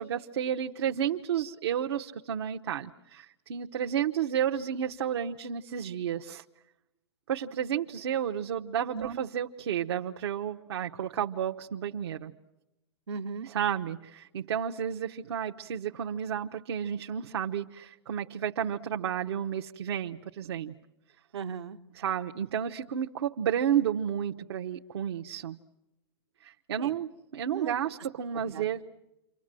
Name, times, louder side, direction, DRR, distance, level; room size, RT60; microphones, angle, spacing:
voice 1, 0.0-6.4 7.3-12.3 13.5-20.7 22.0-25.6 26.4-28.8, right 9 dB, 70° right, 3 dB, 1.0 m, -31 dB
voice 2, 13.1-13.5 21.3-21.8 26.8-26.9 27.5-27.8 28.3-28.8, right 6 dB, 85° right, 4 dB, 1.6 m, -37 dB
29.5 x 25.0 x 7.6 m, 1.0 s
hypercardioid pair, 155°, 14 cm